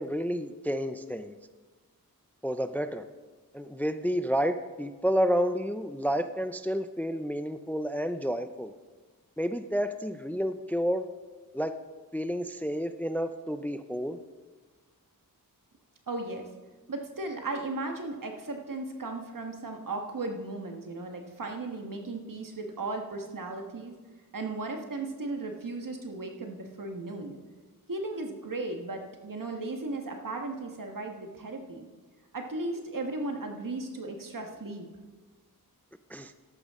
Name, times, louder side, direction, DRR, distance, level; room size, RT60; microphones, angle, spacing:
voice 1, 0.0-1.3 2.4-3.0 3.5-8.7 9.4-11.1 11.5-11.8 12.1-14.2 36.1-36.3, equal, 5° left, 10 dB, 0.4 m, -30 dB
voice 2, 16.1-16.4 16.9-23.9 24.3-27.4 27.9-31.8 32.3-34.9, right 2 dB, 65° right, 3 dB, 1.5 m, -36 dB
13.5 x 12.0 x 3.7 m, 1.3 s
wide cardioid pair, 85°, 36 cm